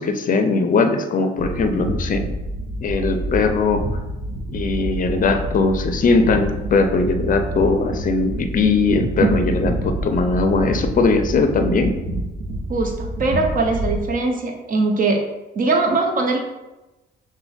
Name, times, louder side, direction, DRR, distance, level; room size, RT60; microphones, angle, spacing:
voice 1, 0.0-2.2 2.8-3.8 4.5-12.0, left 3 dB, 45° left, 7 dB, 0.5 m, -19 dB
sound 1, 1.4-14.0, right 1 dB, 80° right, 0.7 m, -27 dB
voice 2, 12.7-15.2 15.5-16.4, right 3 dB, 45° right, 2 dB, 0.9 m, -21 dB
5.9 x 2.2 x 3.5 m, 1.0 s
cardioid pair, 90°, 20 cm